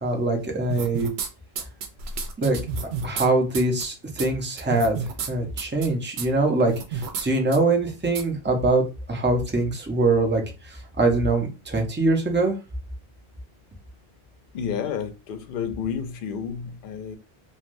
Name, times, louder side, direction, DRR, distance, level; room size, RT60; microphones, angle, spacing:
voice 1, 0.0-1.1 2.4-2.6 3.0-5.0 5.3-10.4 11.0-12.5, right 2 dB, 15° right, 0.4 m, -23 dB
sound 1, 0.7-1.3 1.6-3.3 3.5-3.8 4.2-4.3 4.6-5.3 5.6-5.9 6.2-6.3 6.7-7.3 7.5-7.6 8.2-8.3, right 5 dB, 90° right, 0.8 m, -30 dB
voice 2, 14.5-17.2, left 7 dB, 65° left, 0.7 m, -30 dB
3.2 x 2.3 x 2.5 m
omnidirectional pair, 1.0 m